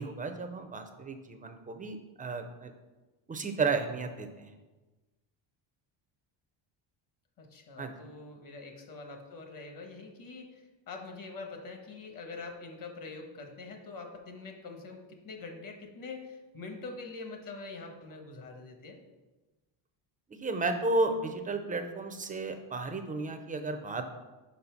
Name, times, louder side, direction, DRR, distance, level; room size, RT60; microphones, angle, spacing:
voice 1, 0.0-2.7 3.3-4.5 7.8-7.9 20.4-24.1, right 3 dB, 20° right, 6 dB, 0.4 m, -33 dB
voice 2, 7.4-19.0, left 3 dB, 45° left, 3 dB, 1.1 m, -44 dB
5.1 x 4.1 x 5.7 m, 1.2 s
cardioid pair, 135°, 49 cm